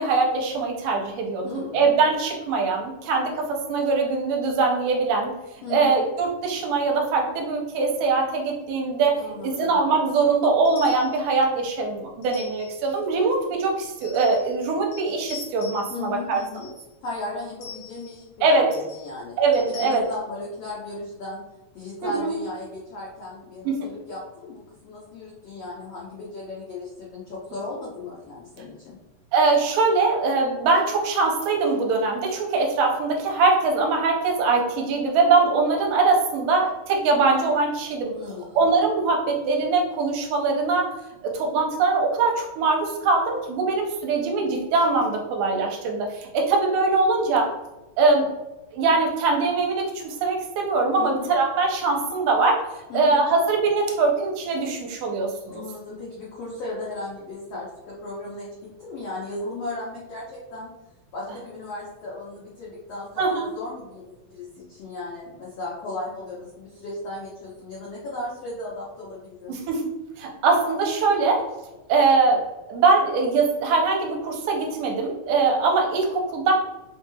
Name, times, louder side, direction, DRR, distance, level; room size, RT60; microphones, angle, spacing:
voice 1, 0.0-5.3 5.7-9.1 9.4-16.4 18.4-18.7 19.4-20.0 22.0-22.3 23.7-23.8 29.3-38.1 38.6-40.9 41.3-47.5 48.0-48.3 48.7-52.6 52.9-55.6 63.2-63.5 69.5-69.9 70.2-71.4 71.9-72.4 72.7-76.5, right 3 dB, 80° right, 1 dB, 2.2 m, -22 dB
voice 2, 1.4-1.9 5.6-6.1 9.2-9.8 15.9-16.7 17.0-19.3 19.7-21.4 21.7-29.0 38.1-38.6 50.9-51.3 52.9-53.2 55.5-60.7 61.1-69.6, left 2 dB, 85° left, -6 dB, 1.4 m, -36 dB
sound 1, 10.7-11.2 12.2-12.9 14.0-14.6 14.9-16.0 16.3-16.8 17.6-18.2 18.7-19.1 19.5-20.0, left 8 dB, 60° left, 1.5 m, -43 dB
5.1 x 3.1 x 2.2 m, 1.0 s
omnidirectional pair, 4.1 m